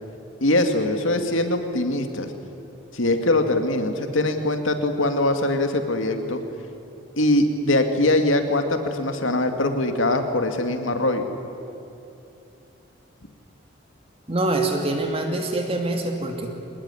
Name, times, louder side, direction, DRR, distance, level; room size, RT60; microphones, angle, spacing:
voice 1, 0.4-2.3 2.9-6.4 7.2-11.2, left 1 dB, 90° left, 6 dB, 2.3 m, -22 dB
voice 2, 14.3-16.5, right 2 dB, 30° right, 3 dB, 2.3 m, -25 dB
25.0 x 20.0 x 9.9 m, 2.7 s
head